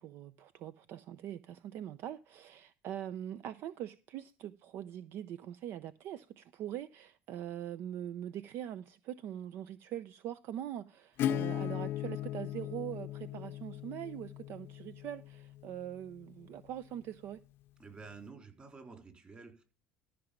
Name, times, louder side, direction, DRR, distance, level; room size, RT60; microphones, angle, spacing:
voice 1, 0.0-17.4, right 11 dB, 60° right, 0.6 m, -42 dB
Acoustic guitar / Strum, 11.2-16.7, left 12 dB, 60° left, 0.6 m, -38 dB
voice 2, 17.8-19.6, right 4 dB, 25° right, 4.0 m, -50 dB
13.5 x 5.9 x 5.2 m
cardioid pair, 115°, 4 cm